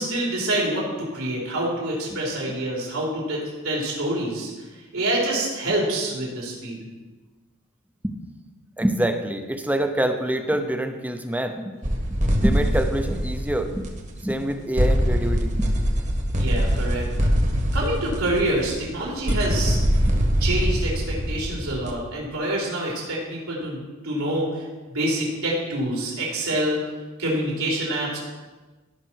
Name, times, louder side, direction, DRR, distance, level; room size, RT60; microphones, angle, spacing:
voice 1, 0.0-6.8 16.3-17.3 17.7-19.8 20.4-26.8 27.2-28.2, right 1 dB, 75° right, -4 dB, 4.1 m, -26 dB
voice 2, 8.8-11.7 12.4-13.9 14.2-15.7, right 1 dB, 5° right, 6 dB, 0.8 m, -25 dB
sound 1, 11.8-14.5 14.8-22.0, equal, 35° right, 1.5 m, -23 dB
17.5 x 6.0 x 4.6 m, 1.2 s
head